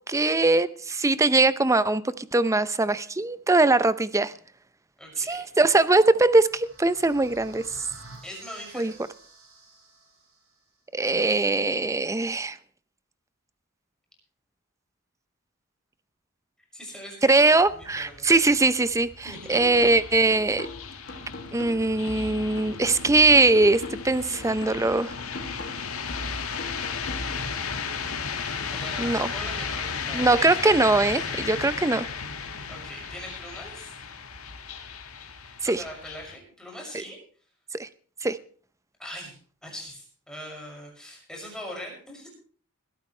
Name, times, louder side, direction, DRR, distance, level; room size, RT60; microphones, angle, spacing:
voice 1, 0.1-4.3 5.2-7.6 8.7-8.9 10.9-12.6 17.2-19.1 19.5-20.7 21.5-25.1 29.0-29.3 30.1-32.1 35.6-35.8 37.7-37.9 38.2-38.4, right 2 dB, 15° right, 0.6 m, -21 dB
voice 2, 5.0-5.4 8.2-8.9 16.7-18.4 19.2-19.7 28.7-30.8 32.5-33.9 35.7-37.2 39.0-39.3 39.6-42.3, equal, 5° left, 6.3 m, -41 dB
sound 1, 5.5-10.6, right 2 dB, 80° right, 7.0 m, -51 dB
sound 2, 17.4-36.4, left 6 dB, 75° left, 1.8 m, -35 dB
sound 3, 19.5-27.5, left 2 dB, 50° left, 3.0 m, -40 dB
20.5 x 13.0 x 3.3 m
head